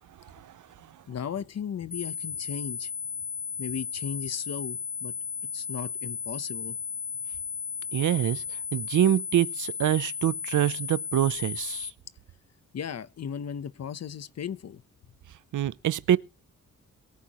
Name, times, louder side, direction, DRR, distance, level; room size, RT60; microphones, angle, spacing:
voice 1, 1.1-2.9 3.6-5.1 5.5-6.8 12.7-14.8, left 8 dB, 55° left, 1.0 m, -36 dB
sound 1, 1.9-11.9, left 6 dB, 35° left, 0.6 m, -35 dB
voice 2, 7.9-8.4 8.7-11.9 15.5-16.2, right 11 dB, 75° right, 0.7 m, -25 dB
23.0 x 8.5 x 3.1 m
wide cardioid pair, 120°, 30 cm